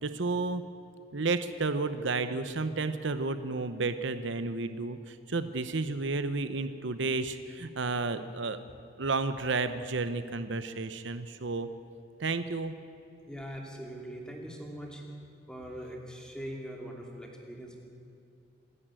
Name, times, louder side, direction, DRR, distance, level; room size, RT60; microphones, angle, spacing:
voice 1, 0.0-0.6 1.1-8.6 9.0-11.7 12.2-12.7, right 3 dB, 70° right, 11 dB, 0.8 m, -32 dB
voice 2, 13.3-15.0 15.5-17.8, equal, 5° left, 0 dB, 2.7 m, -42 dB
27.0 x 11.0 x 9.0 m, 2.6 s
head